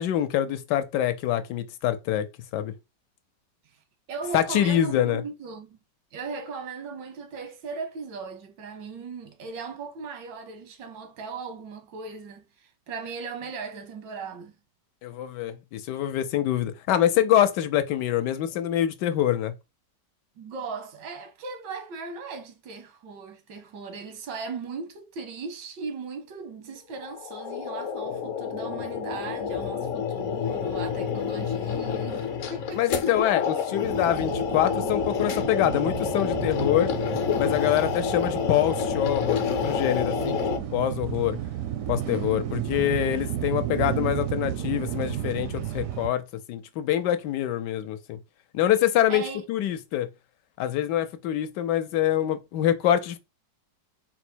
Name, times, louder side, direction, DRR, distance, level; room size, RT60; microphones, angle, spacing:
voice 1, 0.0-2.2 2.5-2.7 4.3-5.2 15.0-19.5 32.8-36.9 37.4-40.4 40.7-41.4 41.9-46.2 46.5-48.2 48.5-49.2 49.5-50.1 50.6-53.2, left 11 dB, 75° left, 1.2 m, -25 dB
voice 2, 4.1-5.8 6.1-14.5 20.4-33.7 49.1-49.5, right 4 dB, 85° right, 1.6 m, -38 dB
sound 1, 27.0-40.6, left 7 dB, 55° left, 0.9 m, -29 dB
sound 2, 33.8-46.1, right 11 dB, 70° right, 0.8 m, -32 dB
4.1 x 2.0 x 4.3 m
omnidirectional pair, 1.9 m